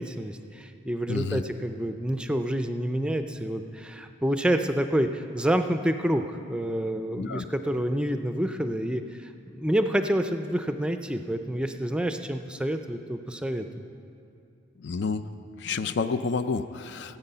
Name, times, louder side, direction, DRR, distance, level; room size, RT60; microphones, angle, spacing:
voice 1, 0.0-9.0 9.5-13.8, right 1 dB, 5° right, 7 dB, 0.4 m, -28 dB
voice 2, 1.1-1.4 7.2-7.5 14.8-15.3 15.6-17.2, left 4 dB, 60° left, 11 dB, 0.5 m, -30 dB
16.5 x 8.1 x 5.6 m, 2.6 s
head